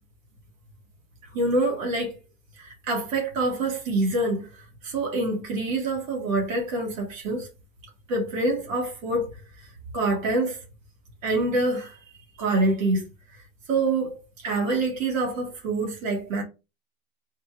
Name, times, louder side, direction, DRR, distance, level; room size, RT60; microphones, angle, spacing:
voice 1, 1.3-2.2 2.6-7.5 8.1-9.7 9.9-10.6 11.2-12.0 12.4-13.1 13.7-16.4, right 2 dB, 65° right, 1.8 m, -26 dB
4.2 x 2.3 x 4.6 m
supercardioid pair, 175°, 42 cm